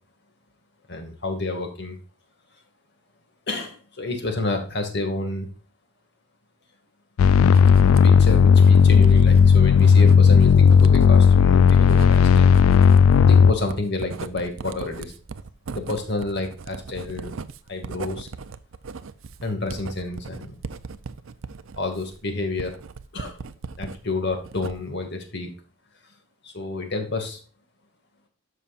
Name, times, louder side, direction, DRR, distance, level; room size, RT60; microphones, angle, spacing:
voice 1, 0.9-2.0 3.5-5.5 7.5-15.1 15.7-17.3 17.7-18.3 19.4-20.6 21.8-22.7 23.1-23.4 23.8-25.5 26.4-27.4, left 2 dB, 55° left, 4 dB, 2.2 m, -29 dB
sound 1, 7.2-13.5, left 6 dB, 80° left, 0.3 m, -14 dB
Writing, 7.5-24.0 24.3-25.0, right 4 dB, 75° right, 0.6 m, -38 dB
12.5 x 5.7 x 2.5 m, 0.37 s
head